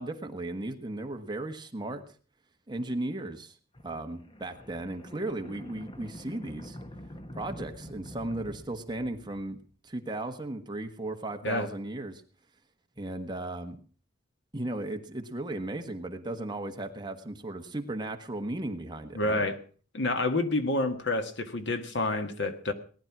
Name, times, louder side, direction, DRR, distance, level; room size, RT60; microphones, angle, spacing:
voice 1, 0.0-2.0 2.7-3.5 3.8-6.8 7.3-12.2 13.0-13.8 14.5-19.4, right 2 dB, 20° right, 5 dB, 1.4 m, -36 dB
sound 1, 3.7-9.6, equal, 25° left, 1.2 m, -46 dB
voice 2, 19.1-19.6 19.9-22.7, left 2 dB, 60° left, 8 dB, 1.7 m, -28 dB
19.0 x 11.0 x 6.0 m, 0.41 s
head